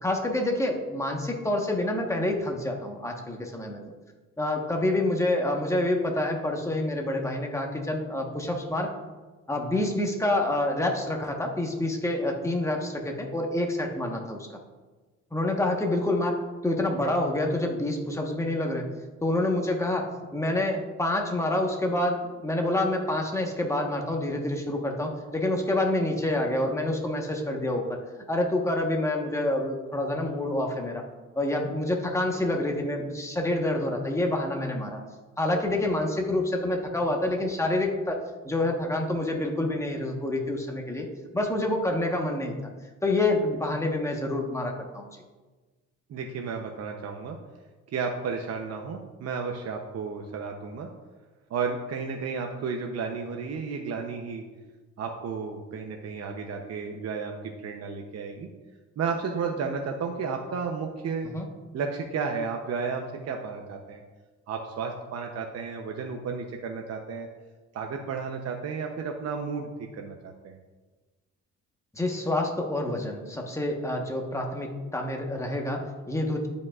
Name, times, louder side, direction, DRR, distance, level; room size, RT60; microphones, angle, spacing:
voice 1, 0.0-3.8 4.4-8.9 9.5-14.5 15.3-16.4 16.6-18.9 19.2-28.0 28.3-31.0 31.3-35.0 35.4-38.2 38.4-41.1 41.3-42.5 43.0-45.1 61.2-61.5 71.9-76.5, left 1 dB, 10° left, 1 dB, 1.2 m, -27 dB
voice 2, 46.1-47.4 47.9-50.9 51.5-54.4 55.0-58.5 59.0-61.3 61.7-64.0 64.5-67.3 67.7-69.7 70.0-70.6, right 5 dB, 55° right, 3 dB, 0.8 m, -32 dB
11.5 x 5.2 x 2.4 m, 1.3 s
cardioid pair, 90°, 30 cm